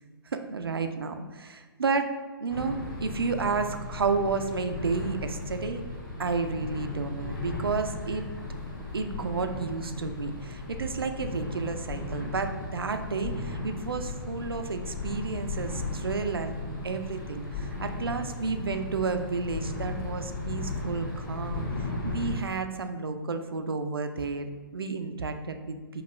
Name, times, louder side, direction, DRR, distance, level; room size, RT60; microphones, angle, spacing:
voice 1, 0.3-2.1 2.4-5.8 6.2-8.2 8.9-16.6 16.8-26.0, right 4 dB, 75° right, 7 dB, 0.4 m, -31 dB
sound 1, 2.5-22.4, left 2 dB, 50° left, 1.1 m, -36 dB
5.2 x 2.3 x 3.0 m, 1.3 s
figure-of-eight pair, 125°, 12 cm